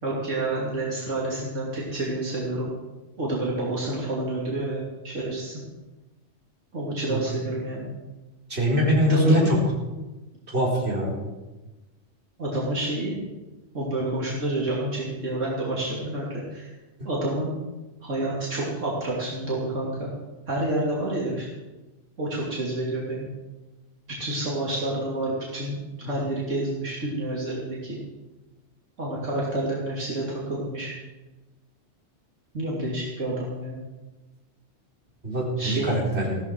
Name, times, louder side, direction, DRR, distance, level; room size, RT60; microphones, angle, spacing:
voice 1, 0.0-2.7 3.2-5.6 6.7-7.9 9.1-9.7 12.4-13.2 13.7-16.7 17.0-17.5 18.0-20.1 20.5-21.5 22.2-23.3 24.2-28.0 29.0-30.9 32.5-33.8 35.6-36.0, right 1 dB, 85° right, -5 dB, 3.3 m, -29 dB
voice 2, 8.5-9.4 10.5-11.1 35.2-36.4, equal, 60° right, -4 dB, 4.4 m, -23 dB
16.0 x 13.5 x 4.7 m, 1.1 s
omnidirectional pair, 1.3 m